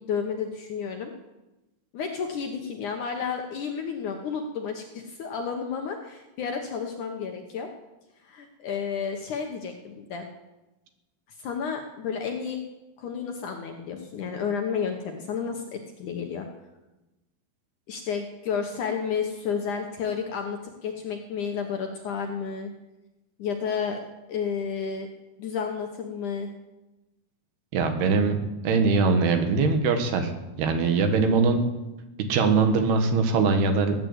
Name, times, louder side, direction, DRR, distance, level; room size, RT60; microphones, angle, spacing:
voice 1, 0.1-1.1 1.9-7.7 8.2-10.3 11.4-12.6 13.0-16.5 17.9-22.7 23.4-24.0 24.3-25.1 25.4-26.5 31.2-31.5, left 6 dB, 65° left, 4 dB, 2.1 m, -31 dB
voice 2, 27.7-28.4 28.6-30.3 30.6-31.6 32.2-34.0, right 4 dB, 75° right, 6 dB, 3.6 m, -22 dB
18.5 x 9.4 x 8.1 m, 1.0 s
omnidirectional pair, 4.7 m